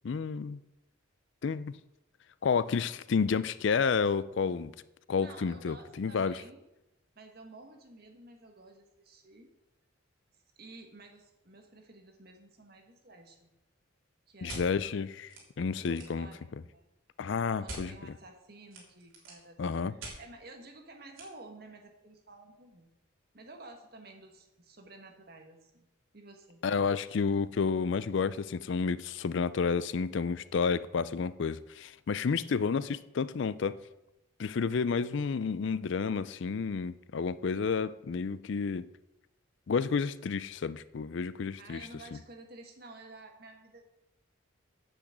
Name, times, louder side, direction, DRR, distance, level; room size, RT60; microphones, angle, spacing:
voice 1, 0.0-0.6 1.4-1.7 2.4-4.7 5.1-6.4 14.4-16.3 17.2-17.9 19.6-19.9 26.6-33.8 34.4-38.9 39.7-41.9, left 5 dB, 65° left, 0.4 m, -30 dB
voice 2, 5.2-6.6 7.1-9.5 10.6-13.5 14.3-14.8 15.7-16.8 17.4-19.6 19.9-22.9 23.3-25.9 26.1-26.6 41.6-43.9, right 2 dB, 50° right, 1.6 m, -52 dB
sound 1, 14.5-14.6 15.3-15.4 15.7-16.2 17.7-17.8 18.7-19.4 20.0-20.2 21.2-21.3, right 2 dB, 80° right, 3.4 m, -43 dB
8.9 x 6.2 x 8.0 m
head